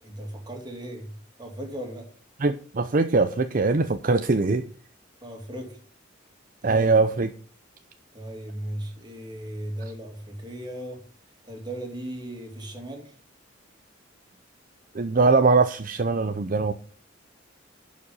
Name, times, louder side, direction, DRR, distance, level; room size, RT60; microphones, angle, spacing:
voice 1, 0.0-2.1 5.2-5.8 6.6-6.9 8.1-11.1 11.5-13.2, right 1 dB, 20° right, 2.5 m, -37 dB
voice 2, 2.4-4.6 6.6-7.3 14.9-16.7, right 3 dB, 45° right, 0.6 m, -21 dB
11.0 x 5.2 x 5.4 m
head